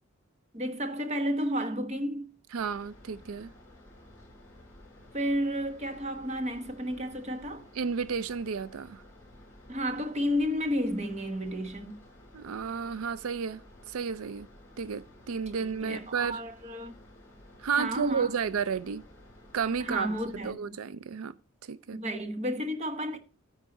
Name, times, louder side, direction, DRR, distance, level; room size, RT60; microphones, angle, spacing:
voice 1, 0.5-2.3 5.1-7.7 9.7-12.0 15.8-16.9 17.8-18.3 19.8-20.7 21.9-23.2, equal, 30° right, 1.0 m, -32 dB
voice 2, 2.5-3.5 7.7-9.0 12.3-13.6 13.9-14.5 14.8-16.4 17.6-19.0 19.5-20.1 20.4-21.3 21.6-22.0, right 6 dB, 80° right, 0.4 m, -32 dB
sound 1, 2.6-20.5, left 1 dB, 10° left, 5.3 m, -54 dB
9.9 x 4.6 x 7.7 m
head